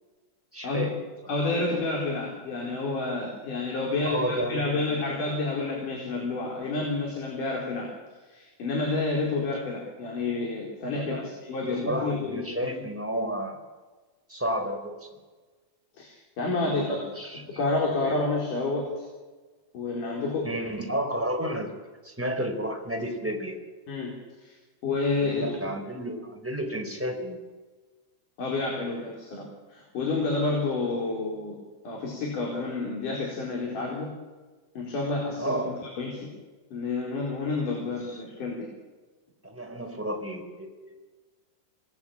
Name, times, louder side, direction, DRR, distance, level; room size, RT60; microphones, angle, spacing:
voice 1, 0.5-1.1 4.0-4.9 10.9-11.3 11.6-13.6 14.3-15.1 16.6-17.6 18.0-18.1 20.4-21.8 22.0-23.6 25.2-27.4 35.4-35.8 38.1-38.2 39.4-41.0, right 1 dB, 5° right, 3 dB, 4.0 m, -32 dB
voice 2, 1.3-7.9 8.3-12.7 16.0-17.0 17.5-19.0 19.7-20.5 23.9-24.1 24.4-24.5 24.8-25.7 28.4-31.6 31.8-34.1 34.8-36.3 36.7-38.7, left 3 dB, 75° left, -1 dB, 6.0 m, -29 dB
26.5 x 20.0 x 8.9 m, 1.3 s
omnidirectional pair, 3.7 m